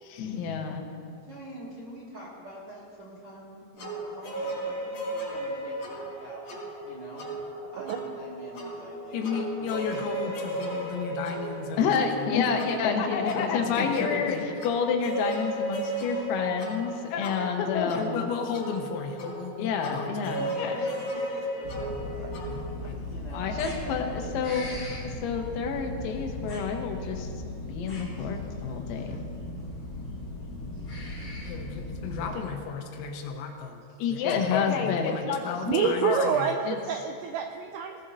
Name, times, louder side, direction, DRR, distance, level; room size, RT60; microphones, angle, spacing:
voice 1, 0.0-0.9 9.1-20.8 22.5-23.0 23.3-24.7 25.0-27.3 27.7-29.2 31.5-36.8, left 6 dB, 90° left, 3 dB, 3.9 m, -29 dB
voice 2, 1.3-6.4 6.8-7.2 7.7-10.3 20.7-22.3 22.8-24.6 27.8-29.2 30.7-30.9 32.2-32.5 33.9-34.0, equal, 50° right, -7 dB, 1.7 m, -46 dB
sound 1, 3.8-22.6, right 1 dB, 60° left, 5.4 m, -35 dB
sound 2, 21.6-32.3, left 2 dB, 35° left, 1.3 m, -37 dB
voice 3, 35.7-38.0, right 7 dB, 85° right, 4 dB, 2.6 m, -27 dB
20.0 x 16.0 x 2.7 m, 2.3 s
omnidirectional pair, 5.9 m